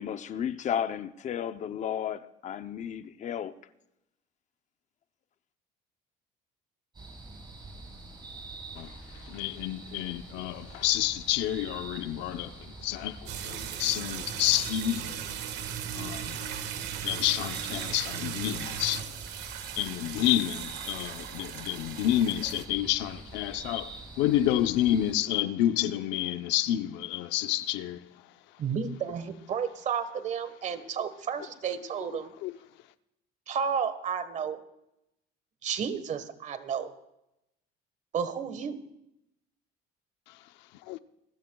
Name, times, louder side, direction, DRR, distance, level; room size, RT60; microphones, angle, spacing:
voice 1, 0.0-3.5, left 9 dB, 40° left, 0.7 m, -33 dB
sound 1, 6.9-25.1, right 3 dB, 25° right, 5.7 m, -46 dB
voice 2, 9.3-12.5 12.8-13.2 13.4-15.2 16.0-16.4 17.0-19.1 19.8-28.0 32.4-32.6 40.9-41.0, left 13 dB, 85° left, 0.7 m, -29 dB
sound 2, 13.3-22.6, right 9 dB, 70° right, 1.6 m, -37 dB
voice 3, 28.6-32.3 33.5-34.6 35.6-36.9 38.1-38.8, right 7 dB, 40° right, 1.4 m, -32 dB
27.0 x 13.5 x 2.3 m
cardioid pair, 130°, 18 cm